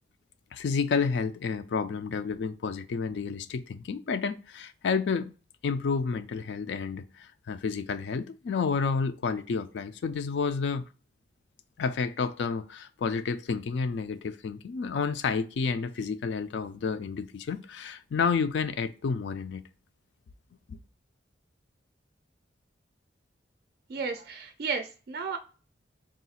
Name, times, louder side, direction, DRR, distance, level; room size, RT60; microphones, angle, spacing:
voice 1, 0.5-5.3 5.6-10.8 11.8-19.6 20.7-20.8, left 5 dB, 70° left, 0.3 m, -30 dB
voice 2, 23.9-25.4, right 5 dB, 55° right, 0.4 m, -33 dB
3.7 x 2.4 x 4.1 m
head